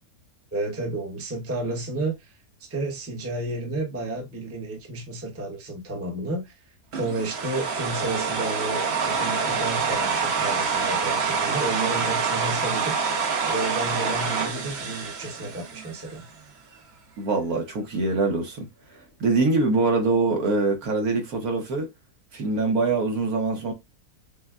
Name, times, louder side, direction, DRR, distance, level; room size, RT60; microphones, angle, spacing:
voice 1, 0.5-6.6 6.9-13.2 13.5-16.3, right 2 dB, 10° right, 0.7 m, -31 dB
sound 1, 6.9-16.1, right 5 dB, 50° right, 0.9 m, -26 dB
voice 2, 17.2-18.7 19.2-21.9 22.3-23.7, right 3 dB, 65° right, 1.5 m, -23 dB
6.5 x 2.2 x 2.3 m
omnidirectional pair, 1.7 m